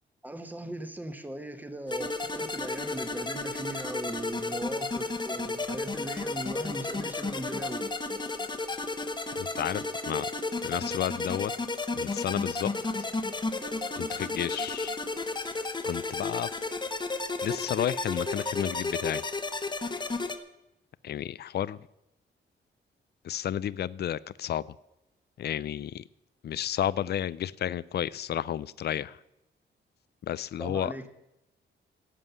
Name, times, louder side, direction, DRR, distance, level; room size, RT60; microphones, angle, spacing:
voice 1, 0.2-7.9 30.6-31.1, right 1 dB, 10° right, 9 dB, 1.3 m, -38 dB
sound 1, 1.9-20.4, left 3 dB, 20° left, 1.2 m, -33 dB
voice 2, 9.4-10.3 10.6-11.5 11.9-12.7 14.0-15.0 15.8-16.5 17.4-19.2 21.0-21.8 23.2-24.6 25.4-26.0 26.4-29.2 30.3-31.1, left 10 dB, 55° left, 19 dB, 0.5 m, -32 dB
16.5 x 7.5 x 8.2 m, 0.88 s
wide cardioid pair, 135°, 20 cm